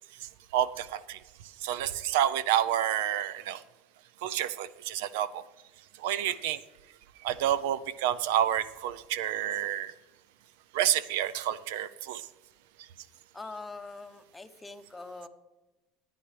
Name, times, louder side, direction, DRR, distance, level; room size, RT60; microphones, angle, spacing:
voice 1, 0.5-1.2 1.6-3.6 4.2-5.4 6.0-6.6 7.2-9.9 10.7-12.2, right 11 dB, 85° right, 16 dB, 0.5 m, -29 dB
voice 2, 13.3-15.3, left 3 dB, 10° left, 7 dB, 0.7 m, -43 dB
13.0 x 9.5 x 3.3 m, 1.1 s
cardioid pair, 145°, 0 cm